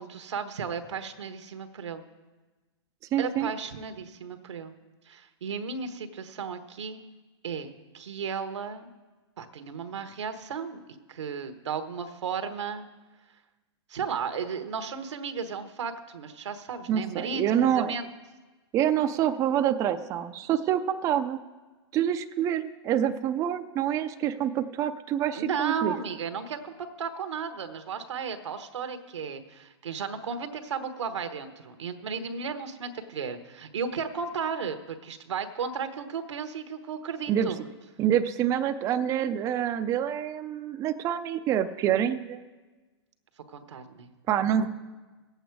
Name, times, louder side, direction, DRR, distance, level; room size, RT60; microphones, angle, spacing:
voice 1, 0.0-2.0 3.2-4.7 5.1-7.0 7.4-8.9 9.4-10.8 11.1-12.9 13.9-18.1 25.3-37.7 43.5-44.1, right 6 dB, 90° right, 9 dB, 1.1 m, -34 dB
voice 2, 3.1-3.5 16.9-17.9 18.7-21.4 21.9-25.9 37.3-37.5 38.0-42.4 44.3-44.7, right 10 dB, 20° right, 7 dB, 0.4 m, -26 dB
17.0 x 8.1 x 4.7 m, 1.2 s
hypercardioid pair, 140°, 15 cm